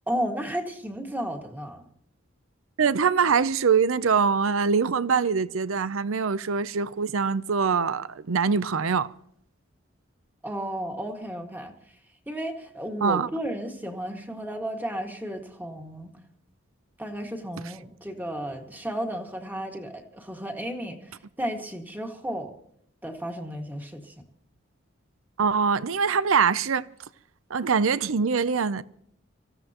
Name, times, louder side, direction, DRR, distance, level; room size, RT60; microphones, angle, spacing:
voice 1, 0.1-1.9 10.4-11.7 12.3-16.2 17.0-22.5 23.0-24.1, equal, 10° right, 1.9 m, -33 dB
voice 2, 2.8-9.1 13.0-13.3 25.4-26.8 27.5-28.8, right 5 dB, 80° right, 0.6 m, -23 dB
25.0 x 15.5 x 3.0 m
head